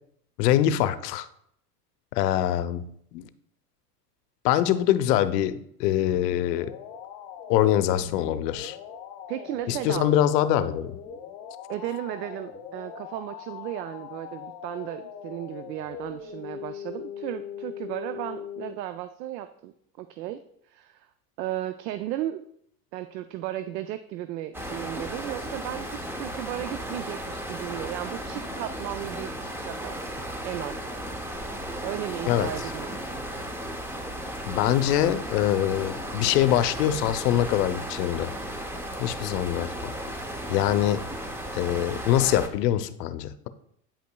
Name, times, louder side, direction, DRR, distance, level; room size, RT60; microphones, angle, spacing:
voice 1, 0.4-1.3 2.1-3.3 4.4-6.7 7.5-8.8 9.7-10.9 32.3-32.5 34.5-38.3 39.0-39.9 40.5-41.0 41.5-43.5, left 11 dB, 75° left, 13 dB, 0.7 m, -24 dB
sound 1, 5.9-18.7, left 8 dB, 45° left, 1.1 m, -41 dB
voice 2, 9.3-10.1 11.7-20.4 20.7-21.1 21.4-22.5 22.9-30.0 30.4-30.8 31.8-33.1, right 13 dB, 85° right, 11 dB, 0.5 m, -35 dB
sound 2, 24.5-42.5, equal, 5° right, 0.5 m, -35 dB
8.9 x 5.4 x 2.2 m, 0.70 s
hypercardioid pair, 105°, 49 cm